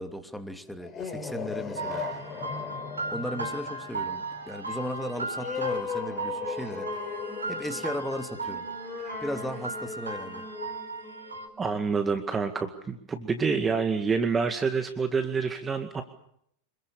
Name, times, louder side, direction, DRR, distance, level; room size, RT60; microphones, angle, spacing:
voice 1, 0.0-2.1 3.1-7.0 7.5-8.7 9.2-10.5, equal, ahead, 7 dB, 2.8 m, -36 dB
sound 1, 0.7-11.9, left 5 dB, 25° left, 5.1 m, -38 dB
sound 2, 1.8-11.5, right 2 dB, 80° right, 3.8 m, -36 dB
voice 2, 11.6-16.0, right 5 dB, 15° right, 7 dB, 2.1 m, -27 dB
27.0 x 22.0 x 7.1 m, 0.71 s
figure-of-eight pair, 90°, 0 cm